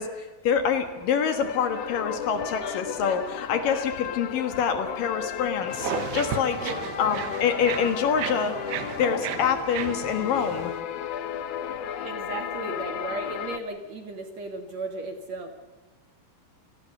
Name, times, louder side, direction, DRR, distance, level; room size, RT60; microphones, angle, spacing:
voice 1, 0.0-6.7 7.0-8.6 9.0-10.7, left 7 dB, 65° left, 8 dB, 3.0 m, -26 dB
sound 1, 0.8-13.6, left 9 dB, 85° left, 1.4 m, -34 dB
sound 2, 5.7-10.8, right 10 dB, 80° right, 3.2 m, -35 dB
voice 2, 6.6-6.9 12.0-15.6, right 2 dB, 50° right, 6 dB, 2.6 m, -35 dB
28.5 x 19.0 x 6.8 m, 1.3 s
omnidirectional pair, 4.7 m